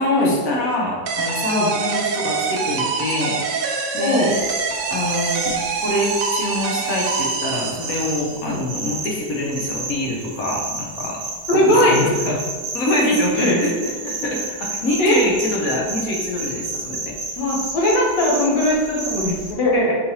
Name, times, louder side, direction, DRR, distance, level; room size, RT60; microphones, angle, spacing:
voice 1, 0.0-4.4 4.9-11.2 11.5-12.4 12.7-17.2, left 1 dB, 65° left, -1 dB, 1.1 m, -25 dB
sound 1, 1.1-8.4, right 5 dB, 90° right, 1.2 m, -25 dB
voice 2, 4.0-4.4 8.4-8.6 11.5-12.1 13.0-13.6 15.0-15.2 17.4-20.0, left 1 dB, 85° left, -3 dB, 1.6 m, -19 dB
sound 2, 4.3-19.5, right 3 dB, 65° right, 1.0 m, -31 dB
4.5 x 3.3 x 2.8 m, 1.5 s
omnidirectional pair, 1.8 m